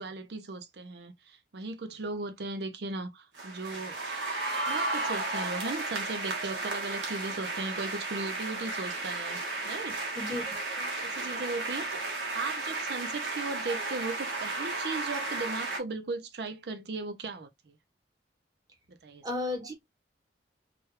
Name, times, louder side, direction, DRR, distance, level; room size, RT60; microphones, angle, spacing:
voice 1, 0.0-4.0 4.7-9.4 9.6-10.0 11.0-12.0 12.3-17.5 19.0-19.2, right 3 dB, 65° right, 0.5 m, -37 dB
sound 1, 3.3-15.8, right 2 dB, 90° right, 1.1 m, -34 dB
voice 2, 19.2-19.7, left 2 dB, 20° right, 0.8 m, -33 dB
3.3 x 2.3 x 3.0 m
head